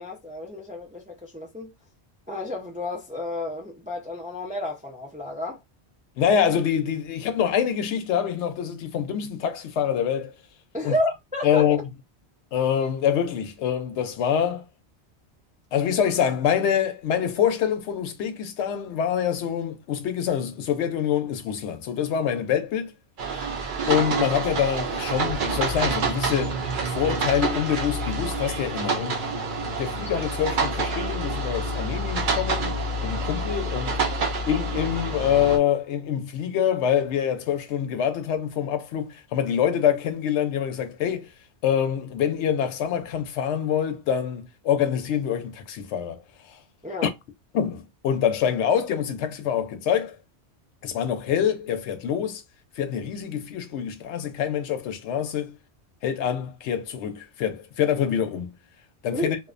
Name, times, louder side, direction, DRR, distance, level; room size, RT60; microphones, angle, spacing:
voice 1, 0.0-1.7 2.3-5.6 10.7-11.7 46.8-47.1 59.1-59.3, left 1 dB, 15° right, 0.3 m, -31 dB
voice 2, 6.2-10.3 10.8-11.0 11.4-11.8 12.5-14.6 15.7-22.9 23.9-26.6 26.9-32.7 33.0-34.0 34.5-41.3 41.6-46.2 46.5-46.6 47.0-47.1 47.5-50.2 50.8-52.4 52.8-55.5 56.0-58.5 59.0-59.4, left 9 dB, 90° left, 0.9 m, -25 dB
sound 1, 23.2-35.6, right 3 dB, 55° right, 0.7 m, -27 dB
2.5 x 2.1 x 2.4 m
omnidirectional pair, 1.1 m